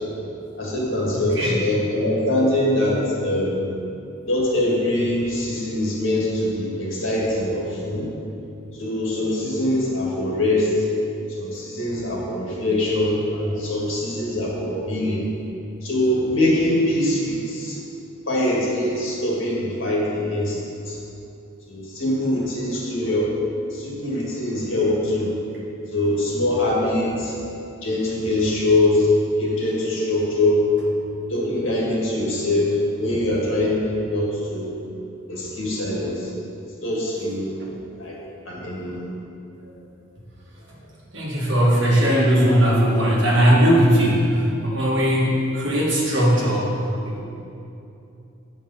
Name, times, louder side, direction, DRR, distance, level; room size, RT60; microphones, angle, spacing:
voice 1, 0.6-3.6 4.3-8.1 8.8-10.7 11.3-15.2 15.8-17.8 18.3-20.6 20.9-21.0 21.7-23.3 23.7-25.3 25.9-27.4 27.8-29.1 29.4-30.6 31.3-34.7 35.3-36.3 36.8-37.5 38.0-38.2 38.5-39.0, left 1 dB, 75° left, -4 dB, 1.9 m, -23 dB
voice 2, 1.1-1.6 37.6-37.7 41.1-46.7 47.1-47.2, equal, 65° right, -5 dB, 1.8 m, -19 dB
7.6 x 5.3 x 5.6 m, 2.8 s
head